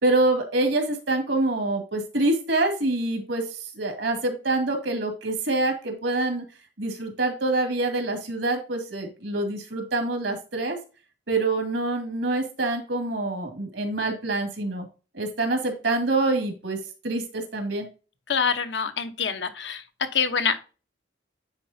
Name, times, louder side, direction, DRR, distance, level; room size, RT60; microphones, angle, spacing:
voice 1, 0.0-6.4 6.8-10.8 11.3-14.9 15.1-16.8 17.0-17.9, right 2 dB, 75° right, 2.2 m, -26 dB
voice 2, 18.3-20.6, left 6 dB, 65° left, 0.8 m, -26 dB
9.7 x 4.2 x 2.6 m
head